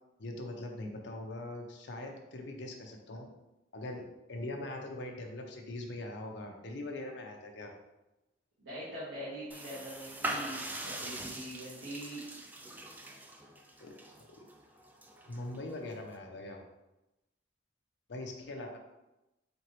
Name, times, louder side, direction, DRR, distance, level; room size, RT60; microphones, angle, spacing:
voice 1, 0.2-3.3 3.7-7.7 13.8-13.9 14.2-14.3 15.3-16.6 18.1-18.8, left 1 dB, 70° left, 2 dB, 0.6 m, -42 dB
voice 2, 8.6-12.2, right 1 dB, 80° right, -11 dB, 1.3 m, -43 dB
sound 1, 9.5-16.2, right 1 dB, 10° right, 0.3 m, -42 dB
4.4 x 2.9 x 3.0 m, 0.97 s
head